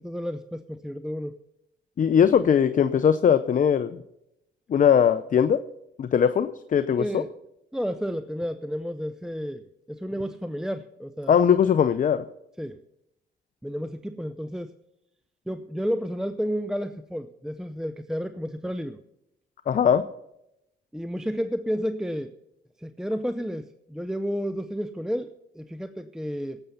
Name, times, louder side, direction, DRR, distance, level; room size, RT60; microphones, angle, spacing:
voice 1, 0.0-1.4 7.0-7.3 7.7-9.6 9.9-11.3 12.6-12.8 13.6-14.7 15.5-19.0 20.9-22.3 22.8-26.6, equal, 5° right, 11 dB, 0.5 m, -31 dB
voice 2, 2.0-4.0 4.7-5.6 6.0-7.2 11.3-12.2 19.7-20.0, left 8 dB, 40° left, 12 dB, 0.6 m, -20 dB
17.5 x 7.9 x 5.6 m, 0.83 s
cardioid pair, 90°, 20 cm